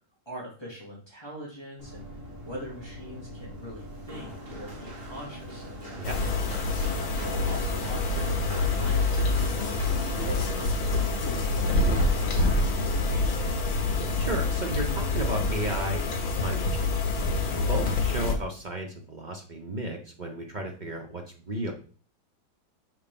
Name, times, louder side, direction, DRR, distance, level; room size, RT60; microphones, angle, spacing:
voice 1, 0.3-2.0 2.4-5.6 6.7-9.8 10.2-13.4, equal, 15° left, -5 dB, 2.4 m, -42 dB
Run, 1.8-17.9, equal, 30° right, 1.9 m, -40 dB
sound 1, 6.0-18.4, left 3 dB, 75° left, 2.0 m, -26 dB
voice 2, 14.2-17.0 17.5-21.7, right 1 dB, 50° right, 2 dB, 0.5 m, -34 dB
5.8 x 4.6 x 5.2 m, 0.41 s
omnidirectional pair, 2.2 m